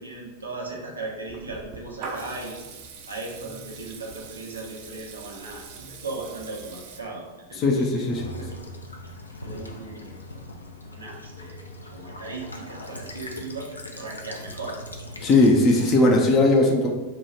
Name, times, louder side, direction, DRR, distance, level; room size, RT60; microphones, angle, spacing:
voice 1, 0.0-2.6 3.1-8.5 9.4-14.8, right 3 dB, 75° right, -2 dB, 0.8 m, -38 dB
Water tap faucet / Liquid, 1.3-7.0, right 4 dB, 45° right, 0.4 m, -42 dB
voice 2, 7.6-8.3 15.2-16.9, left 2 dB, 30° left, 0 dB, 0.5 m, -18 dB
Child speech kid speaking / Bird vocalization bird call bird song / Stream, 8.1-16.1, left 1 dB, 80° left, 0.5 m, -40 dB
3.1 x 2.3 x 4.2 m, 1.2 s
figure-of-eight pair, 90°, 0 cm